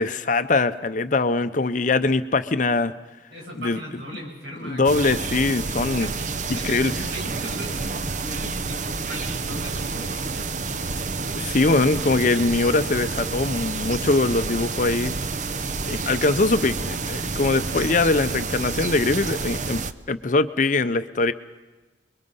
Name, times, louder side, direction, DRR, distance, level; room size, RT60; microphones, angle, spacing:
voice 1, 0.0-2.9 3.6-3.8 4.6-6.1 6.5-7.1 8.4-8.6 11.2-15.1 15.9-19.8 20.1-21.3, left 3 dB, 45° left, 11 dB, 0.6 m, -22 dB
voice 2, 3.3-5.0 6.0-6.8 7.1-10.5, equal, 60° right, -1 dB, 7.9 m, -38 dB
sound 1, 4.8-19.9, right 4 dB, 40° right, 0.8 m, -29 dB
28.5 x 22.5 x 5.6 m, 1.2 s
head